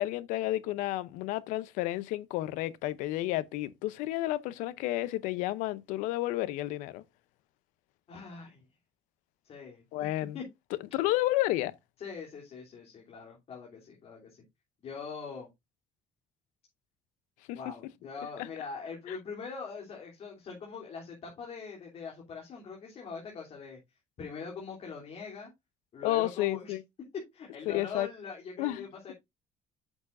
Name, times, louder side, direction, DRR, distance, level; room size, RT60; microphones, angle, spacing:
voice 1, 0.0-7.0 9.9-10.4 10.9-11.7 17.5-17.6 19.1-19.2 26.0-26.8 27.7-28.1 28.6-28.9, left 16 dB, 90° left, 0.7 m, -31 dB
voice 2, 8.1-8.6 9.4-10.1 10.3-10.4 12.0-14.4 14.8-15.5 17.5-23.8 24.2-25.5 25.9-26.8 27.1-29.1, left 5 dB, 55° left, 3.2 m, -42 dB
8.8 x 7.2 x 2.5 m
cardioid pair, 100°, 13 cm